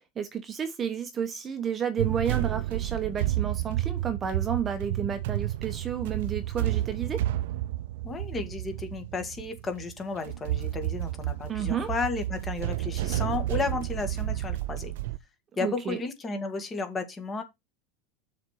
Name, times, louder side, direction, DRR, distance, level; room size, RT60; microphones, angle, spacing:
voice 1, 0.2-7.2 11.5-11.9 15.6-16.0, right 7 dB, 25° right, 1.1 m, -31 dB
sound 1, 2.0-15.2, right 14 dB, 75° right, 0.5 m, -31 dB
voice 2, 8.0-14.9 15.6-17.4, left 4 dB, 20° left, 1.7 m, -33 dB
6.7 x 4.3 x 6.5 m
supercardioid pair, 150°, 0 cm